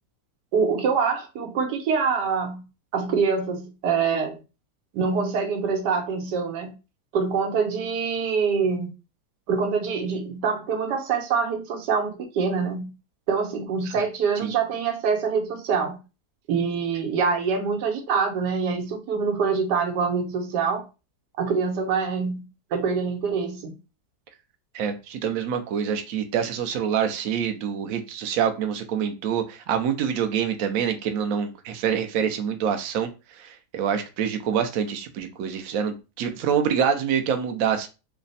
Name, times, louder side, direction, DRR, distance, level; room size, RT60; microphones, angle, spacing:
voice 1, 0.5-2.6 2.9-4.4 4.9-6.7 7.1-8.9 9.5-12.9 13.3-16.0 16.5-20.8 21.4-22.4 22.7-23.7, right 5 dB, 90° right, 1.4 m, -25 dB
voice 2, 24.7-33.1 33.4-37.9, right 8 dB, 65° right, 0.9 m, -26 dB
3.3 x 2.1 x 3.9 m
omnidirectional pair, 1.8 m